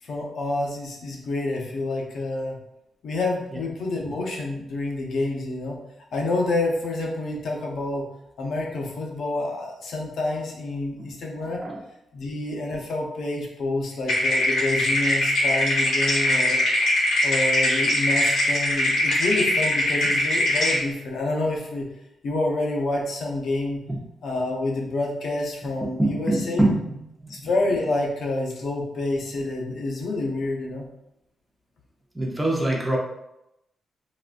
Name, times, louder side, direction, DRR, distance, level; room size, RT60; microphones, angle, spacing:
voice 1, 0.0-2.5 3.0-5.8 6.1-8.1 8.4-11.6 12.1-16.6 17.2-21.9 22.2-23.8 24.2-26.6 27.3-30.9, left 2 dB, 65° left, -1 dB, 0.6 m, -28 dB
sound 1, 14.1-20.8, left 1 dB, 90° left, 1.4 m, -22 dB
voice 2, 26.0-27.3 32.1-33.0, right 1 dB, 10° right, -2 dB, 0.6 m, -24 dB
3.8 x 2.3 x 2.4 m, 0.85 s
wide cardioid pair, 135°, 0 cm